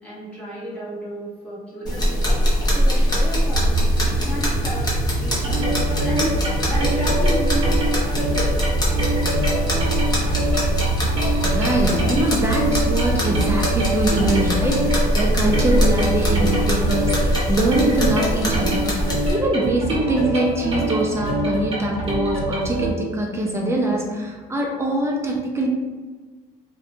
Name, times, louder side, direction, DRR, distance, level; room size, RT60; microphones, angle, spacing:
voice 1, 0.0-2.4 2.7-4.9 5.2-7.7 8.0-8.6, right 1 dB, 10° left, -9 dB, 1.1 m, -32 dB
sound 1, 1.9-19.3, equal, 25° left, 0.7 m, -23 dB
sound 2, 3.5-18.9 19.7-19.8, right 3 dB, 75° right, 0.6 m, -27 dB
sound 3, 5.4-22.9, right 1 dB, 35° right, 0.9 m, -25 dB
voice 2, 11.4-25.7, right 1 dB, 15° right, 0 dB, 0.5 m, -23 dB
2.7 x 2.2 x 2.6 m, 1.4 s
cardioid pair, 110°, 17 cm